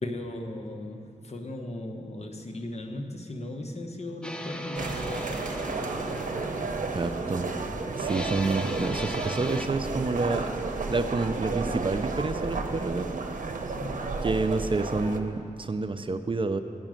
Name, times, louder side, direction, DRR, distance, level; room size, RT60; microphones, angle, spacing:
voice 1, 0.0-5.6 13.8-14.3, left 1 dB, 50° left, 2 dB, 1.1 m, -37 dB
sound 1, 4.2-9.7, equal, 5° left, 0.6 m, -38 dB
sound 2, 4.8-15.2, right 3 dB, 65° right, 0.8 m, -32 dB
voice 2, 6.9-7.5 8.0-13.2 14.2-16.6, right 3 dB, 40° right, 9 dB, 0.5 m, -29 dB
11.0 x 6.1 x 9.0 m, 2.4 s
wide cardioid pair, 80°, 14 cm